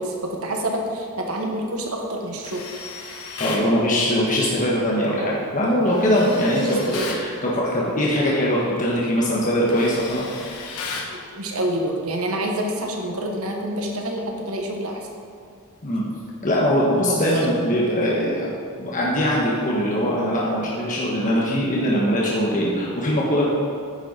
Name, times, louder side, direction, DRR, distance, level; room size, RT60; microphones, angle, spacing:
voice 1, 0.0-2.6 6.6-7.2 9.2-9.3 11.1-15.0 17.1-17.2, right 1 dB, 75° right, 1 dB, 1.4 m, -27 dB
Tools, 2.4-3.7 5.9-7.3 8.8-9.0 9.3-11.2, left 4 dB, 90° left, 1.3 m, -34 dB
voice 2, 3.4-10.2 15.8-16.0 16.4-18.5 18.8-23.5, equal, 40° left, -5 dB, 1.3 m, -21 dB
9.8 x 6.9 x 5.2 m, 2.3 s
head